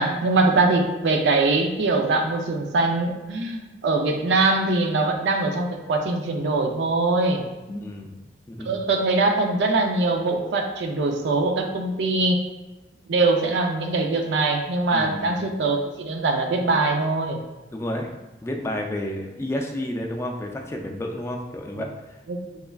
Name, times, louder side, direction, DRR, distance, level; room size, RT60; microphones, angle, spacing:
voice 1, 0.0-7.4 8.7-12.4 13.1-17.4 22.3-22.6, right 3 dB, 80° right, 4 dB, 0.4 m, -22 dB
voice 2, 7.7-8.1 8.5-8.7 14.9-15.5 17.7-18.1 18.4-22.2, left 1 dB, 15° left, 1 dB, 0.3 m, -31 dB
3.5 x 3.2 x 2.2 m, 1.1 s
head